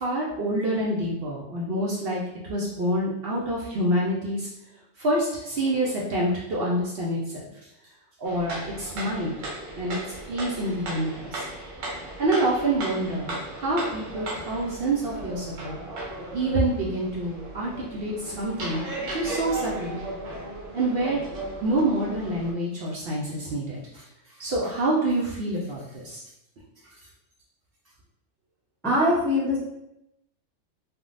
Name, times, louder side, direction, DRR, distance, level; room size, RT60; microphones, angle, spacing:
voice 1, 0.0-2.2 2.5-4.5 5.0-7.4 8.2-9.3 9.8-10.0 10.3-11.4 12.2-15.8 16.3-18.8 19.1-20.0 20.7-21.2 21.6-24.0 24.4-26.2, right 1 dB, 60° right, -4 dB, 0.7 m, -27 dB
sound 1, 8.2-22.5, right 2 dB, 85° right, 1.1 m, -36 dB
voice 2, 28.8-29.6, left 1 dB, 5° left, -7 dB, 0.5 m, -22 dB
3.4 x 2.2 x 2.4 m, 0.87 s
omnidirectional pair, 1.3 m